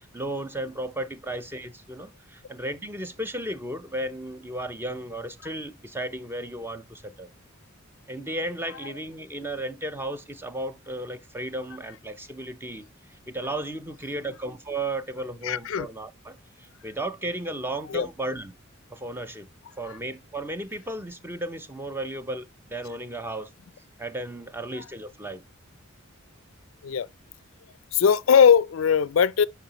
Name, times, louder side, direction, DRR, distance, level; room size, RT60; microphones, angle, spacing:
voice 1, 0.1-7.3 8.1-12.9 13.3-18.5 18.9-19.5 19.8-23.5 24.0-25.4, right 1 dB, 10° right, 0.6 m, -34 dB
voice 2, 15.4-15.9 17.9-18.1 24.7-24.8 26.8-27.1 27.9-29.4, left 7 dB, 70° left, 0.4 m, -20 dB
10.5 x 5.5 x 2.9 m
head